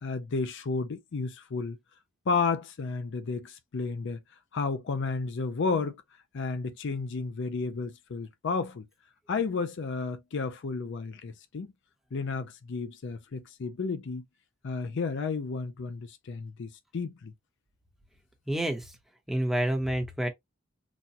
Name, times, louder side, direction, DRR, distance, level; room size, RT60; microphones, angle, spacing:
voice 1, 0.0-1.8 2.3-4.2 4.5-6.0 6.3-8.9 9.3-11.7 12.1-14.2 14.6-17.3, left 4 dB, 60° left, 0.5 m, -32 dB
voice 2, 18.5-18.8 19.3-20.3, right 1 dB, ahead, 0.9 m, -28 dB
4.0 x 2.2 x 2.7 m
head